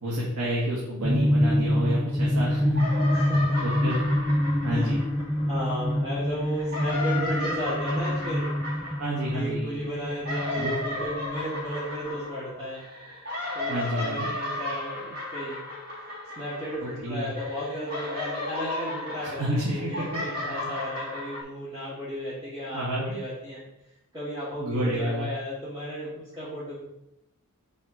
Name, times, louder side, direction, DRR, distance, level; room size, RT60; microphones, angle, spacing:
voice 1, 0.0-2.9 3.6-4.0 4.6-5.0 9.0-9.8 10.6-10.8 13.7-14.3 16.8-17.3 19.2-20.0 22.7-23.2 24.6-25.3, equal, 80° right, -5 dB, 1.7 m, -29 dB
sound 1, 1.0-12.2, equal, 10° left, 0.4 m, -26 dB
sound 2, 1.7-2.4 2.7-5.9 6.5-17.1 17.3-21.4, left 2 dB, 45° right, 3.0 m, -35 dB
voice 2, 3.1-3.6 4.7-4.9 5.4-8.5 9.3-12.8 13.5-15.6 16.4-23.6 24.1-26.8, equal, 20° right, -12 dB, 2.7 m, -34 dB
7.1 x 4.3 x 5.0 m, 0.86 s
head